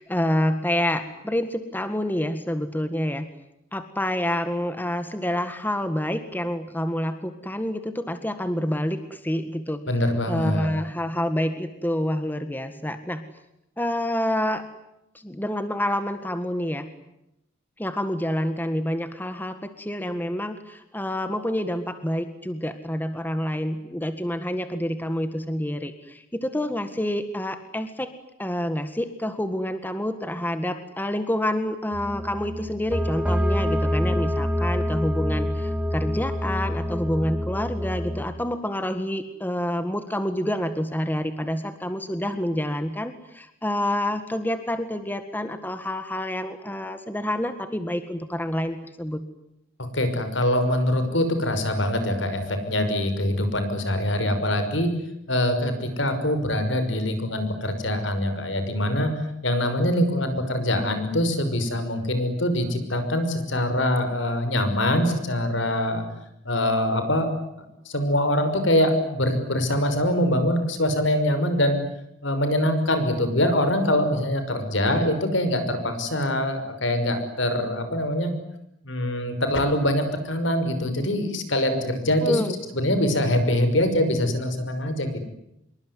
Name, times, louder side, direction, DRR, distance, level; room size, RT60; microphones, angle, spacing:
voice 1, 0.0-3.3 3.7-9.8 10.2-13.2 13.8-14.7 15.1-16.9 17.8-28.1 28.4-49.2 82.2-82.6, left 1 dB, 10° left, 9 dB, 1.8 m, -28 dB
voice 2, 9.9-10.7 49.9-54.9 55.3-59.1 59.4-66.0 66.4-67.3 67.9-71.8 72.2-78.3 78.8-82.4 82.7-85.2, left 1 dB, 70° left, 9 dB, 5.9 m, -24 dB
sound 1, 31.9-38.2, left 1 dB, 5° right, 3.1 m, -26 dB
26.5 x 23.5 x 9.6 m, 0.83 s
head